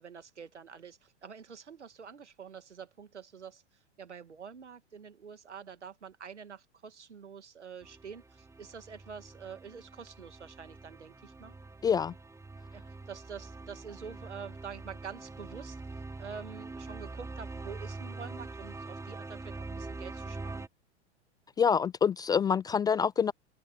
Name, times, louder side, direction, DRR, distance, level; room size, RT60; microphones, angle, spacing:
voice 1, 0.0-3.6 4.0-11.5 12.7-15.8 16.2-20.7, right 6 dB, 85° right, 2.4 m, -47 dB
sound 1, 7.8-20.7, right 3 dB, 10° right, 6.2 m, -44 dB
voice 2, 11.8-12.1 21.6-23.3, left 7 dB, 10° left, 0.4 m, -26 dB
hypercardioid pair, 105°, 34 cm